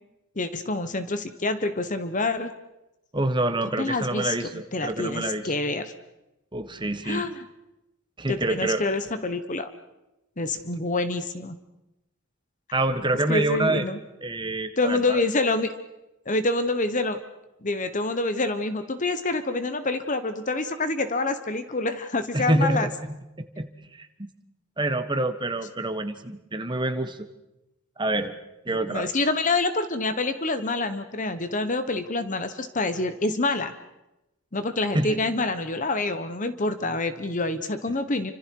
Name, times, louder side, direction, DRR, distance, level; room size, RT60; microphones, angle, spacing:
voice 1, 0.4-2.5 3.8-5.8 7.0-7.4 8.3-9.7 10.4-11.6 13.3-14.0 14.8-15.7 16.3-17.2 17.6-22.9 28.7-33.7 34.5-38.3, left 2 dB, 35° left, 10 dB, 1.2 m, -27 dB
voice 2, 3.1-5.5 6.5-7.2 8.2-8.8 12.7-13.8 14.2-15.2 22.3-22.9 23.4-24.3 24.8-27.3 28.0-28.3 28.6-29.1 34.9-35.2, right 2 dB, 20° right, 9 dB, 1.4 m, -27 dB
29.0 x 26.0 x 4.7 m, 0.93 s
head